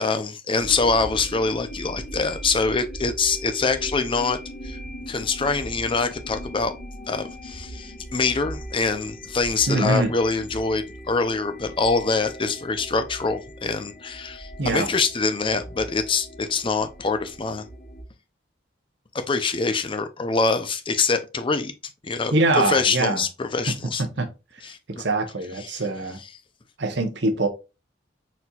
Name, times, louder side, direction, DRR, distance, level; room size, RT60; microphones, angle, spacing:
voice 1, 0.0-4.4 4.6-4.8 5.1-6.7 7.1-17.6 19.1-21.7 22.0-24.0 24.6-25.1 25.6-25.8, left 4 dB, 30° left, 0.5 m, -24 dB
sound 1, 0.6-18.0, equal, 55° left, 2.0 m, -39 dB
voice 2, 9.7-10.1 14.6-14.9 22.3-23.2 24.0-24.3 25.0-26.2 26.8-27.5, right 2 dB, 65° right, 0.9 m, -23 dB
4.3 x 4.1 x 2.3 m
head